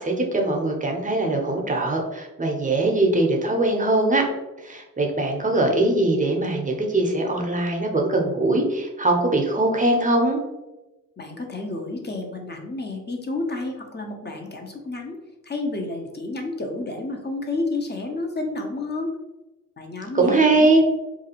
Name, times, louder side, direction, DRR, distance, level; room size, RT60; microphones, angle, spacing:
voice 1, 0.0-4.3 4.6-10.4 20.1-20.8, right 2 dB, 20° right, 1 dB, 0.7 m, -21 dB
voice 2, 11.2-15.2 15.4-19.1 19.8-20.8, left 2 dB, 30° left, 3 dB, 0.6 m, -30 dB
2.5 x 2.3 x 2.8 m, 1.0 s
supercardioid pair, 40°, 37 cm